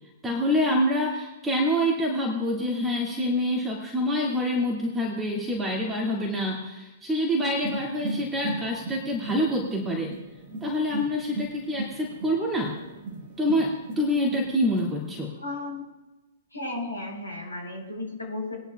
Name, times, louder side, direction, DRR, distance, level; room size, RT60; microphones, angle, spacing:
voice 1, 0.2-10.1 10.6-12.8 13.4-15.3, equal, 10° right, -3 dB, 2.2 m, -26 dB
sound 1, 7.5-15.2, right 2 dB, 35° right, 1.3 m, -37 dB
voice 2, 15.4-15.8 16.5-18.5, left 2 dB, 85° left, -2 dB, 4.9 m, -34 dB
20.5 x 10.5 x 2.3 m, 1.1 s
figure-of-eight pair, 110°, 0 cm